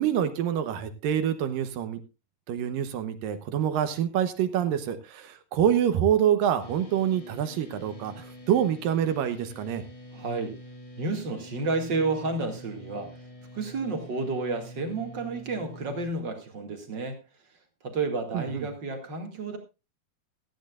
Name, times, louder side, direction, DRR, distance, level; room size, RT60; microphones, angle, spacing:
voice 1, 0.0-2.0 2.5-9.8 18.3-18.7, right 9 dB, 70° right, 10 dB, 2.4 m, -26 dB
sound 1, 6.6-16.1, equal, 55° left, 0.3 m, -46 dB
voice 2, 10.1-10.6 11.0-13.2 13.5-17.2 17.8-19.6, right 3 dB, 40° right, 4 dB, 2.0 m, -31 dB
17.0 x 13.5 x 2.4 m, 0.27 s
omnidirectional pair, 4.5 m